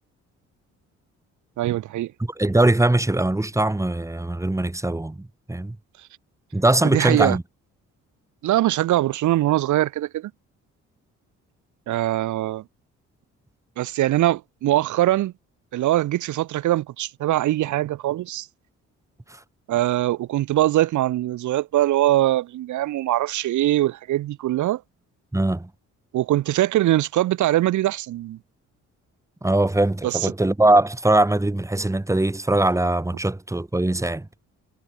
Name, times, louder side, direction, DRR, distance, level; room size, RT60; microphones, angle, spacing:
voice 1, 1.6-2.1 6.8-7.4 8.4-10.3 11.9-12.6 13.8-15.3 15.7-18.5 19.7-24.8 26.1-28.4 30.0-30.3, right 14 dB, 75° right, 1.0 m, -22 dB
voice 2, 2.4-5.8 6.5-7.4 19.3-19.4 25.3-25.7 29.4-34.3, right 2 dB, 10° right, 2.7 m, -21 dB
cardioid pair, 90°, 30 cm